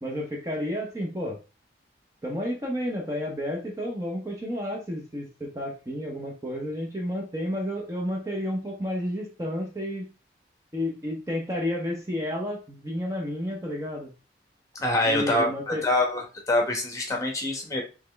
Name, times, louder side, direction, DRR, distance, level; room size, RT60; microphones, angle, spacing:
voice 1, 0.0-1.4 2.2-10.1 10.7-14.1 15.0-15.8, equal, 20° right, 0 dB, 0.7 m, -31 dB
voice 2, 14.8-17.8, left 1 dB, 20° left, 1 dB, 1.0 m, -25 dB
4.1 x 3.1 x 3.3 m, 0.32 s
head